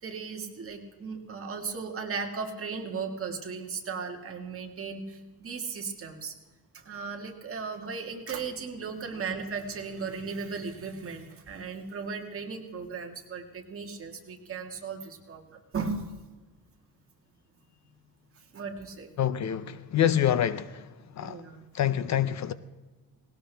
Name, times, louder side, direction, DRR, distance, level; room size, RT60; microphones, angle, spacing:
voice 1, 0.0-6.3 6.7-16.0 18.3-19.1 21.2-21.6, right 5 dB, 35° right, 1.9 m, -36 dB
voice 2, 19.2-20.8 21.2-21.4 21.7-22.5, left 10 dB, 50° left, 0.5 m, -26 dB
19.0 x 18.0 x 3.4 m
cardioid pair, 165°, 37 cm